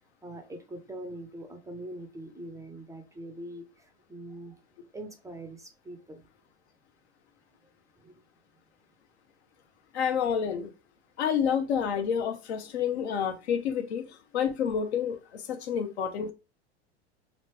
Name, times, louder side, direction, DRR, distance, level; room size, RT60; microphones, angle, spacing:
voice 1, 0.2-4.6 4.9-6.2 8.0-8.1, right 1 dB, 10° right, 0.4 m, -43 dB
voice 2, 9.9-10.7 11.2-16.3, left 7 dB, 75° left, 0.7 m, -29 dB
3.1 x 2.5 x 3.1 m
hypercardioid pair, 100°, 33 cm